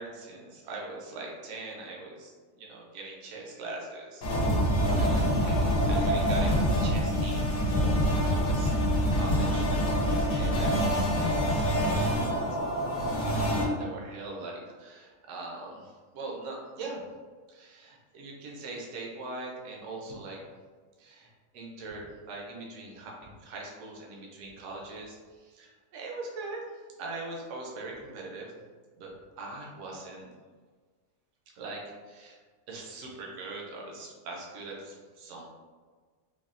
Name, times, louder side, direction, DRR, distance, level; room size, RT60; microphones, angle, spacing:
voice 1, 0.0-2.3 2.6-4.7 5.0-9.7 10.3-12.5 13.6-17.0 17.5-20.4 21.0-26.6 27.0-28.5 29.0-30.3 31.6-32.4 32.7-35.4, right 2 dB, 70° right, -2 dB, 0.9 m, -42 dB
sound 1, 4.2-13.6, equal, 80° left, 1.1 m, -26 dB
3.4 x 2.3 x 2.4 m, 1.5 s
omnidirectional pair, 1.4 m